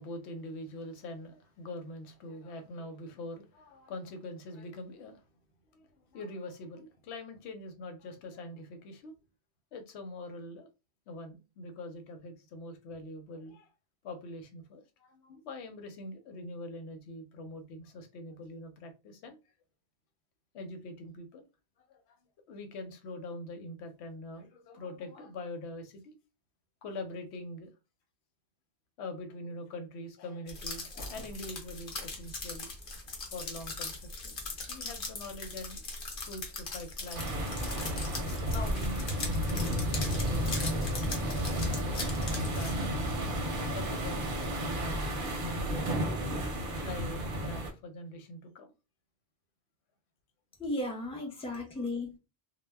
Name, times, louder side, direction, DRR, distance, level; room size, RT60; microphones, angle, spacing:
voice 1, 0.0-5.3 5.7-9.1 9.7-10.7 11.1-13.7 14.0-19.4 20.5-21.4 21.8-22.2 22.5-26.1 26.8-27.7 29.0-32.7 33.3-35.8 36.2-37.6 38.5-40.0 40.2-41.8 42.3-43.0 43.7-46.3 46.8-48.7 51.3-51.5 51.8-51.9, left 1 dB, 90° left, 0.9 m, -44 dB
sound 1, 30.5-42.8, left 3 dB, 55° left, 0.9 m, -40 dB
sound 2, 37.1-47.7, equal, 60° right, 0.7 m, -32 dB
voice 2, 50.6-52.2, left 2 dB, 5° left, 0.5 m, -35 dB
2.1 x 2.0 x 3.3 m
omnidirectional pair, 1.1 m